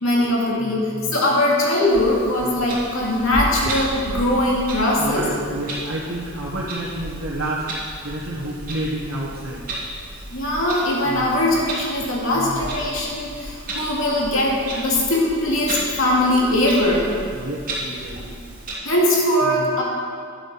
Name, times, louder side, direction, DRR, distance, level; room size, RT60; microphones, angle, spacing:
voice 1, 0.0-5.3 10.3-17.1 18.8-19.8, left 1 dB, 70° left, -4 dB, 2.5 m, -20 dB
voice 2, 0.6-1.3 2.4-2.7 5.0-9.6 11.0-11.6 12.3-12.7 17.3-18.4 19.4-19.7, right 1 dB, 75° right, -6 dB, 1.6 m, -30 dB
Clock, 1.9-18.7, right 1 dB, 40° right, 2.8 m, -33 dB
11.0 x 7.2 x 6.0 m, 2.3 s
head